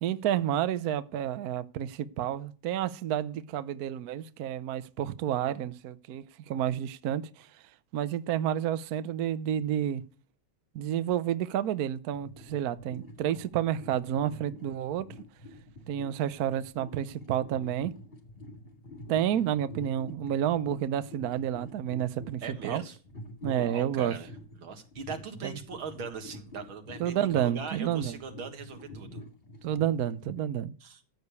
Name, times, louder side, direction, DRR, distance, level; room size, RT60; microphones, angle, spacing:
voice 1, 0.0-7.5 7.9-10.0 10.7-15.1 15.9-17.9 19.1-22.8 23.4-24.2 25.4-25.6 27.0-28.2 29.6-30.7, right 10 dB, 65° right, 1.0 m, -30 dB
sound 1, 12.1-30.4, left 1 dB, 30° left, 2.1 m, -47 dB
voice 2, 22.4-23.0 23.5-29.2 30.8-31.1, right 5 dB, 85° right, 2.5 m, -40 dB
14.5 x 4.9 x 8.2 m
omnidirectional pair, 2.2 m